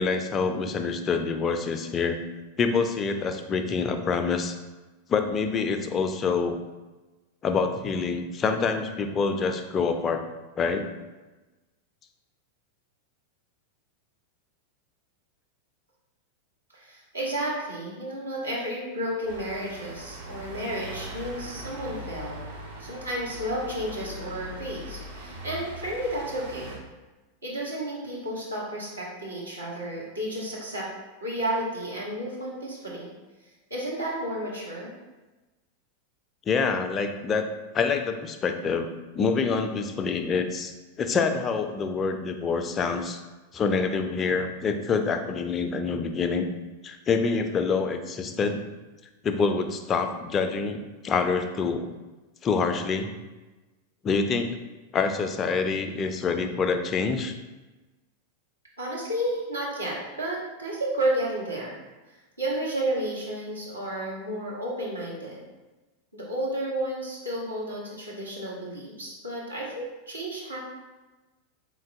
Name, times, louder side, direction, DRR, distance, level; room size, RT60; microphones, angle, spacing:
voice 1, 0.0-2.2 2.6-4.6 5.1-6.6 7.4-10.2 10.6-10.9 36.5-37.5 37.7-43.2 43.5-46.5 46.8-48.6 49.2-51.9 52.4-53.1 54.0-54.6 54.9-57.3, left 5 dB, 25° left, 7 dB, 0.3 m, -26 dB
voice 2, 16.7-22.4 22.8-26.8 27.4-30.9 31.2-33.1 33.7-34.9 58.8-61.8 62.4-65.4 66.1-70.6, right 1 dB, 80° right, -5 dB, 1.0 m, -32 dB
sound 1, 19.3-26.8, equal, 55° right, 1.0 m, -40 dB
3.8 x 3.4 x 2.5 m, 1.2 s
figure-of-eight pair, 90°, 0 cm